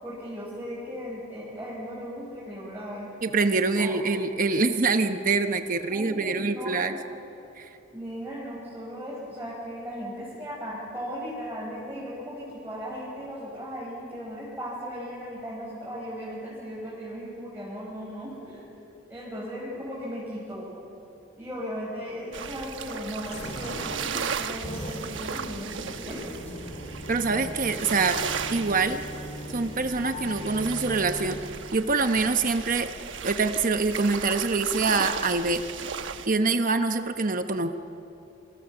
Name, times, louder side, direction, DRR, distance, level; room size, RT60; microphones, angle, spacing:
voice 1, 0.0-3.1 3.7-4.0 5.9-7.1 7.9-18.6 19.1-20.7 21.4-26.3, equal, 10° right, -7 dB, 5.3 m, -37 dB
voice 2, 3.2-6.9 7.6-7.7 27.1-28.2 28.5-29.0 29.5-31.4 31.7-32.9 33.2-35.6 36.3-37.8, right 3 dB, 45° right, 7 dB, 1.0 m, -25 dB
sound 1, 22.3-36.3, right 6 dB, 75° right, 1.1 m, -36 dB
sound 2, 23.2-31.5, equal, 35° left, 3.1 m, -39 dB
28.0 x 25.0 x 7.2 m, 2.9 s
head